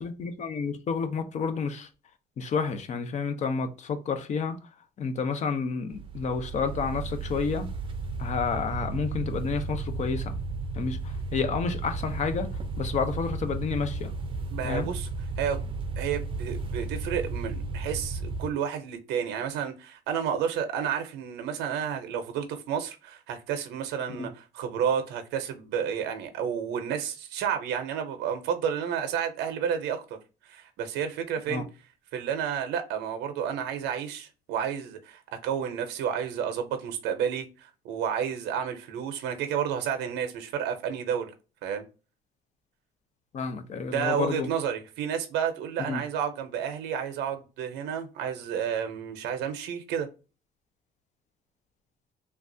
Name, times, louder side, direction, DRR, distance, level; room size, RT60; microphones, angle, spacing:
voice 1, 0.0-1.9 2.4-4.6 5.0-7.7 8.2-10.4 10.7-12.5 12.8-14.1 14.6-14.9 24.2-24.3 31.5-31.6 43.3-44.5 45.8-46.0, left 5 dB, 45° left, 0.6 m, -30 dB
sound 1, 5.9-18.5, right 3 dB, 30° right, 0.5 m, -34 dB
voice 2, 14.5-15.1 15.4-30.2 30.4-31.6 32.1-41.3 41.6-41.9 43.9-50.1, right 8 dB, 85° right, 0.6 m, -31 dB
3.2 x 2.4 x 2.6 m
cardioid pair, 110°, 17 cm